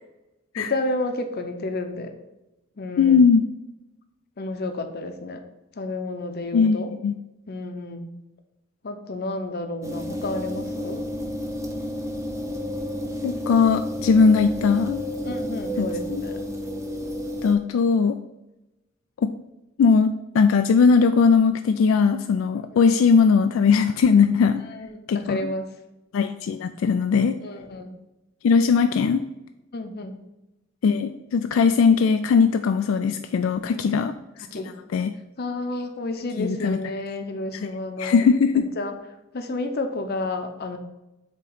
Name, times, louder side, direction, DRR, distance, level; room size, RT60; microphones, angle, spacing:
voice 1, 0.6-2.1 2.8-3.3 4.4-5.4 5.8-6.9 7.5-8.1 8.8-11.0 15.2-16.4 22.5-22.6 24.7-25.7 27.4-28.0 29.7-30.2 33.6-34.1 34.5-34.7 35.4-38.3 38.5-38.9 39.3-40.8, left 2 dB, 50° left, 7 dB, 0.7 m, -31 dB
voice 2, 3.0-3.4 6.5-7.1 13.2-15.0 15.8-16.2 17.4-18.2 19.2-19.3 19.8-24.6 25.1-25.4 26.1-27.4 28.4-29.2 30.8-34.1 34.5-34.6 34.9-35.1 36.4-36.8 38.0-38.7, left 5 dB, 80° left, 7 dB, 0.3 m, -19 dB
sound 1, 9.8-17.5, equal, 15° right, 0.7 m, -31 dB
7.9 x 3.0 x 4.7 m, 0.96 s
head